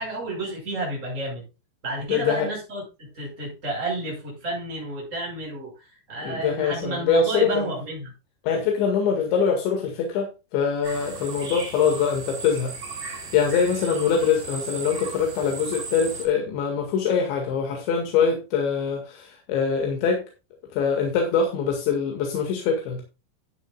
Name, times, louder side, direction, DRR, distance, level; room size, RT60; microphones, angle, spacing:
voice 1, 0.0-1.4 1.8-8.1, right 2 dB, 15° right, -3 dB, 6.7 m, -31 dB
voice 2, 2.1-2.5 6.2-7.7 8.4-12.7 13.3-20.2 20.7-23.0, left 6 dB, 90° left, 2 dB, 4.3 m, -23 dB
sound 1, 10.8-16.3, right 4 dB, 45° right, 5.6 m, -36 dB
13.0 x 10.0 x 2.4 m, 0.28 s
omnidirectional pair, 5.1 m